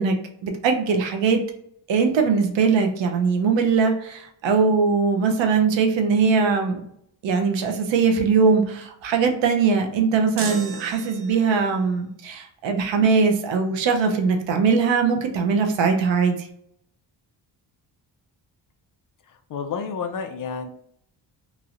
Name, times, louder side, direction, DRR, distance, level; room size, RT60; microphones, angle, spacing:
voice 1, 0.0-1.4 1.9-6.8 7.2-16.5, right 5 dB, 70° right, 4 dB, 0.7 m, -21 dB
sound 1, 10.4-11.7, right 5 dB, 30° right, 0.4 m, -35 dB
voice 2, 19.5-20.7, left 6 dB, 45° left, 6 dB, 0.4 m, -30 dB
3.1 x 2.6 x 2.5 m, 0.71 s
cardioid pair, 115°, 46 cm